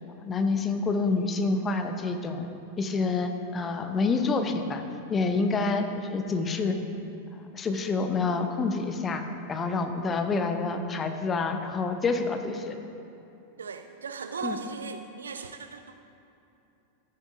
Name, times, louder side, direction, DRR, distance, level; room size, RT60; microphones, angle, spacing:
voice 1, 0.2-2.5 2.8-4.8 5.1-6.7 7.5-9.2 9.5-12.8 14.4-14.6, left 4 dB, 20° left, 6 dB, 0.7 m, -27 dB
voice 2, 13.6-16.0, right 5 dB, 70° right, 7 dB, 0.3 m, -37 dB
13.0 x 9.7 x 2.7 m, 2.9 s
figure-of-eight pair, 90°, 0 cm